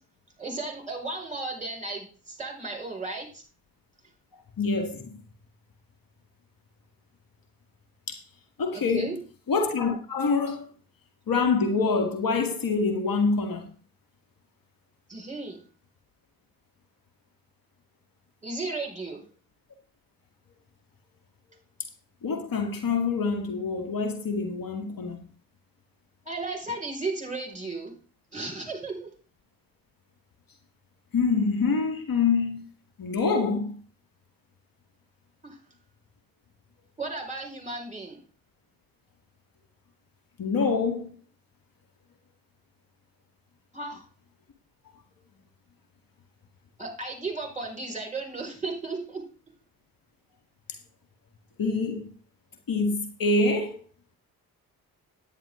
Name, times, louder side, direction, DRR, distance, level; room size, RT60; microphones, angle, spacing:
voice 1, 0.4-3.4 8.7-9.1 10.5-10.6 15.1-15.6 18.4-19.2 26.3-27.9 28.3-29.1 35.4-35.6 37.0-38.2 43.7-44.0 46.8-49.2, right 3 dB, 15° right, 5.4 m, -35 dB
voice 2, 4.6-5.1 8.1-8.2 8.6-9.2 9.5-10.7 11.3-13.7 22.2-25.3 31.1-32.7 33.0-33.7 40.4-41.2 51.6-52.1 52.7-53.8, left 4 dB, 55° left, 2.0 m, -26 dB
9.9 x 9.6 x 3.8 m
hypercardioid pair, 45°, 42 cm